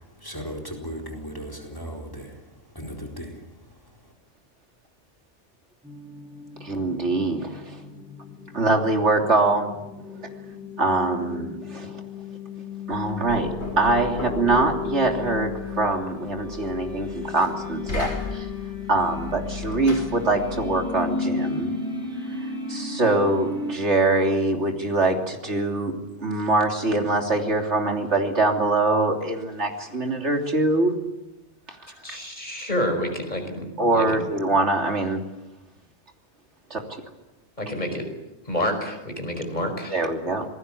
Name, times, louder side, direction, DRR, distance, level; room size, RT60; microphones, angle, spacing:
voice 1, 0.2-2.3 2.8-3.3, equal, 20° left, 1 dB, 4.3 m, -36 dB
sound 1, 5.8-23.8, left 4 dB, 5° right, 7.1 m, -34 dB
voice 2, 6.6-7.8 8.5-9.7 10.2-10.3 10.8-12.0 12.9-18.5 18.9-21.7 22.7-25.9 26.2-30.9 31.7-31.8 33.8-35.2 36.7-36.8 39.9-40.5, right 2 dB, 80° right, 3 dB, 3.4 m, -23 dB
Knock, 12.9-20.8, left 2 dB, 75° left, 5.4 m, -36 dB
voice 3, 32.0-33.6 33.9-34.3 37.6-38.1 38.5-40.0, left 1 dB, 40° left, 5 dB, 5.4 m, -28 dB
27.0 x 19.5 x 8.5 m, 0.96 s
omnidirectional pair, 1.2 m